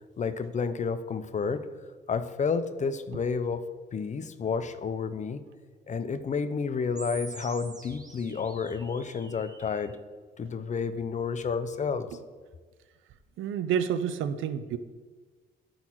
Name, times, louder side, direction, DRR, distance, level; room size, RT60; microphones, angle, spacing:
voice 1, 0.2-1.7 2.1-3.6 3.9-5.4 5.9-10.0 10.4-12.1, left 5 dB, 35° left, 11 dB, 0.6 m, -30 dB
sound 1, 7.0-10.0, right 2 dB, 20° right, 1.0 m, -46 dB
voice 2, 13.4-14.8, right 8 dB, 80° right, 12 dB, 0.6 m, -29 dB
11.5 x 4.0 x 4.5 m, 1.4 s
cardioid pair, 90°, 20 cm